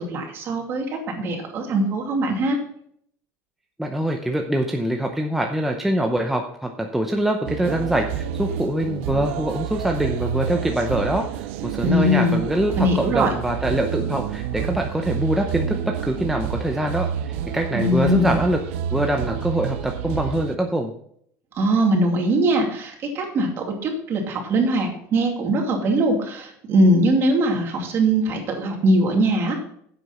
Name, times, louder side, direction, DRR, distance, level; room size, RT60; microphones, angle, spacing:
voice 1, 0.0-2.6 11.8-12.4 12.8-13.3 17.7-18.3 21.5-29.6, right 1 dB, 35° right, 2 dB, 2.6 m, -21 dB
voice 2, 3.8-18.6 18.9-20.9, right 1 dB, 5° right, 2 dB, 0.7 m, -24 dB
sound 1, 7.4-20.6, right 9 dB, 80° right, 0.7 m, -29 dB
10.5 x 8.0 x 4.3 m, 0.66 s
cardioid pair, 150°, 7 cm